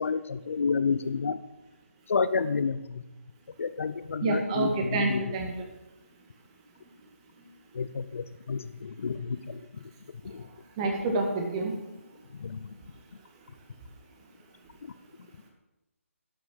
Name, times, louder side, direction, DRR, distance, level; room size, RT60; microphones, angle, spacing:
voice 1, 0.0-1.4 2.1-3.0 3.6-5.3 7.7-9.6 10.2-10.4 12.4-12.6, left 5 dB, 65° left, 14 dB, 0.6 m, -30 dB
voice 2, 4.2-5.7 10.8-11.7, right 3 dB, 25° right, 2 dB, 2.0 m, -28 dB
11.0 x 6.3 x 6.5 m, 0.96 s
hypercardioid pair, 160°, 8 cm